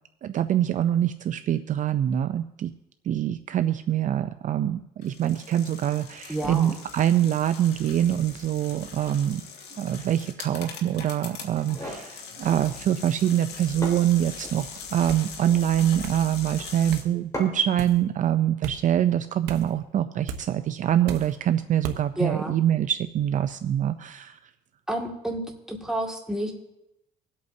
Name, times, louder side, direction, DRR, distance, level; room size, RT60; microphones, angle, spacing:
voice 1, 0.2-2.7 3.1-9.4 9.8-24.4, right 11 dB, 50° right, 10 dB, 0.5 m, -24 dB
sound 1, 5.0-17.0, left 6 dB, 80° left, 1.9 m, -42 dB
voice 2, 6.3-6.8 22.2-22.6 24.9-25.4 25.7-26.5, right 1 dB, 5° right, 0 dB, 2.1 m, -30 dB
sound 2, 11.6-12.1 13.4-13.5 13.8-14.6 15.3-15.7 17.3-17.8, equal, 20° left, 4.2 m, -36 dB
sound 3, 15.1-15.3 16.0-16.3 16.9-17.1 17.8-18.0 18.6-18.8 19.5-19.7 20.3-20.4 21.1-21.3 21.8-22.0, right 7 dB, 80° right, 1.0 m, -35 dB
25.0 x 8.4 x 2.7 m, 0.86 s
cardioid pair, 110°, 17 cm